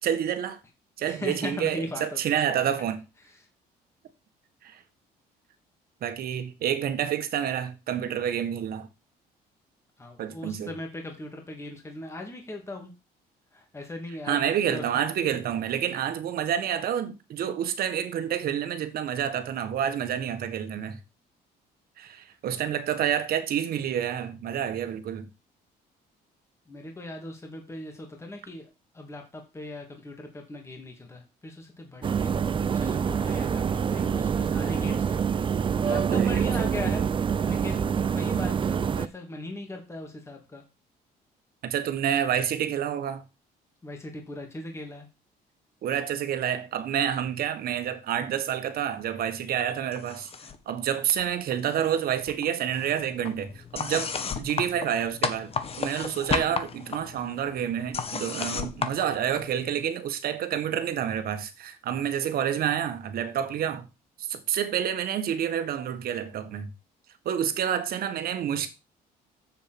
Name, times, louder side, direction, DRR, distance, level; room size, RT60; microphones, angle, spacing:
voice 1, 0.0-0.6 1.0-3.0 4.6-4.8 6.0-8.9 10.2-10.7 14.3-21.0 22.0-25.3 36.1-36.4 41.6-43.2 45.8-50.3 50.7-54.1 54.4-55.5 55.8-63.9 64.2-66.7 67.3-68.7, right 9 dB, 60° right, 1.8 m, -28 dB
voice 2, 1.1-2.4 3.2-3.4 10.0-12.9 13.5-14.9 26.7-32.5 32.7-37.1 37.4-40.6 43.8-45.1, left 2 dB, 15° left, 2.7 m, -39 dB
sound 1, 32.0-39.1, right 7 dB, 30° right, 0.5 m, -26 dB
sound 2, 49.9-50.7 51.0-52.0 52.3-59.8, left 5 dB, 35° left, 1.5 m, -34 dB
7.8 x 7.0 x 6.1 m
cardioid pair, 110°, 17 cm